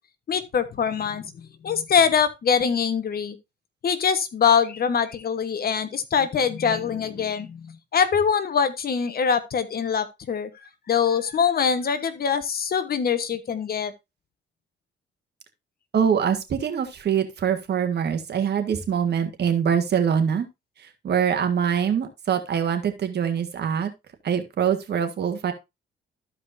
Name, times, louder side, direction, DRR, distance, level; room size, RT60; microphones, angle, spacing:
voice 1, 0.3-3.4 3.8-10.5 10.9-13.9, left 7 dB, 50° left, 1.1 m, -23 dB
voice 2, 15.9-20.5 20.8-23.9 24.2-25.5, right 8 dB, 55° right, 1.6 m, -24 dB
13.5 x 4.9 x 2.6 m
cardioid pair, 90°, 20 cm